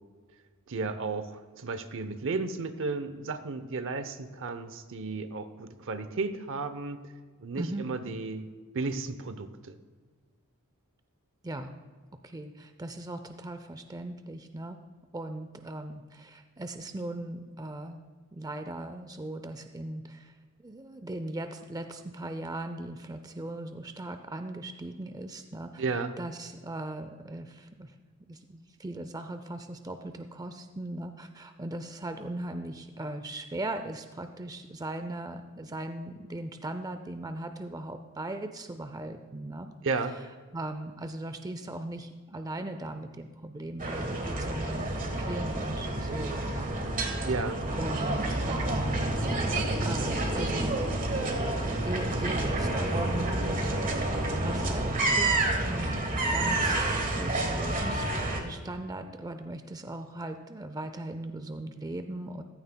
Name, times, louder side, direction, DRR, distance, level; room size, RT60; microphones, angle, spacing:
voice 1, 0.7-7.0 7.4-9.7 25.8-26.1 39.8-40.1 47.3-47.6, right 3 dB, 60° right, 11 dB, 0.7 m, -33 dB
voice 2, 7.6-7.9 11.4-11.7 12.2-14.8 15.1-18.0 18.3-20.3 20.6-25.8 26.2-27.9 28.3-39.7 40.5-46.7 47.1-47.3 47.7-50.8 51.4-51.6 51.8-58.0 58.4-62.4, right 1 dB, 15° right, 8 dB, 0.4 m, -38 dB
sound 1, 43.8-58.4, right 2 dB, 35° right, 1.4 m, -29 dB
14.5 x 13.0 x 2.3 m, 1.5 s
head